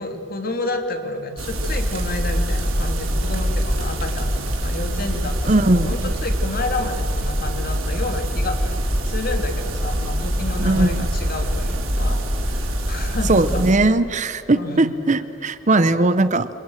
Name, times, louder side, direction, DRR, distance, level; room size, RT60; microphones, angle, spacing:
voice 1, 0.0-13.7 14.5-14.9 15.7-16.2, left 2 dB, 45° left, 5 dB, 3.0 m, -30 dB
sound 1, 1.4-13.7, equal, 90° right, 5.7 m, -24 dB
voice 2, 5.5-6.0 10.6-11.1 13.2-16.5, right 2 dB, 35° right, 13 dB, 0.8 m, -19 dB
28.0 x 27.5 x 6.5 m, 2.5 s
head